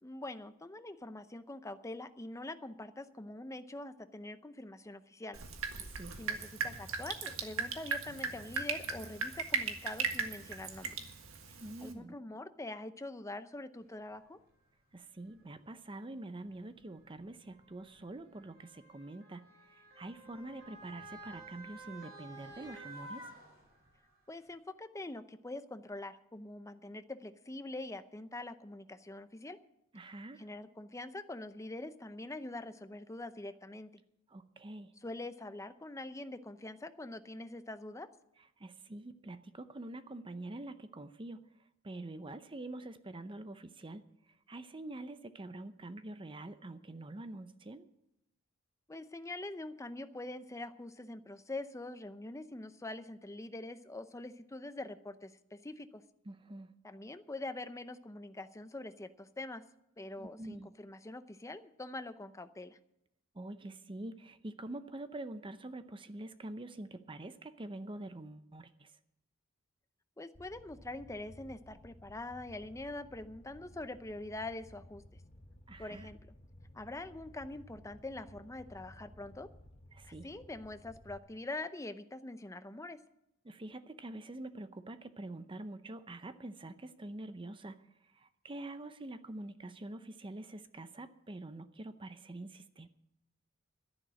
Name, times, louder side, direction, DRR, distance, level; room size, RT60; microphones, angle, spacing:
voice 1, 0.0-5.4 6.2-11.0 11.8-14.4 24.3-29.6 30.4-33.9 35.0-38.1 48.9-56.0 56.8-59.6 60.0-62.8 70.2-75.0 75.8-76.2 76.7-79.5 80.0-83.0, left 2 dB, 15° left, 11 dB, 0.7 m, -44 dB
Drip, 5.3-11.9, right 5 dB, 85° right, 1.7 m, -38 dB
voice 2, 11.5-12.1 14.9-23.3 29.9-30.4 34.3-34.9 38.6-41.4 41.8-44.0 44.5-47.8 56.3-56.7 60.2-60.7 63.3-68.9 75.7-76.1 79.9-80.3 83.4-87.8 88.1-92.9, right 2 dB, 25° right, 11 dB, 0.6 m, -46 dB
Motor vehicle (road) / Siren, 14.1-14.2 15.2-15.4 16.4-24.0 24.5-24.6, right 2 dB, 50° right, 4.8 m, -52 dB
Fire, 70.3-81.2, left 1 dB, 30° left, 1.2 m, -56 dB
12.0 x 10.5 x 7.5 m, 0.82 s
head